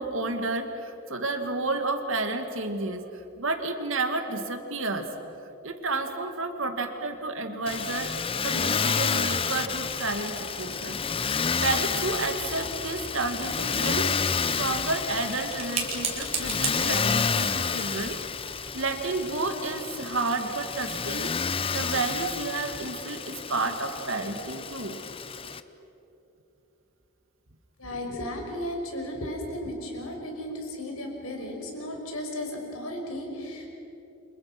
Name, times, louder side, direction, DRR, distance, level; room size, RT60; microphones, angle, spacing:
voice 1, 0.0-3.1 3.4-5.1 5.6-8.1 8.4-11.0 11.6-14.1 14.5-18.2 18.7-21.4 21.7-25.0, right 3 dB, 65° right, 6 dB, 2.4 m, -31 dB
Motor vehicle (road), 7.7-25.6, left 5 dB, 25° left, 0.7 m, -30 dB
sound 1, 14.3-19.5, right 5 dB, 30° right, 4.1 m, -37 dB
voice 2, 27.8-33.7, left 1 dB, 85° left, 2 dB, 5.6 m, -35 dB
30.0 x 27.0 x 6.2 m, 3.0 s
head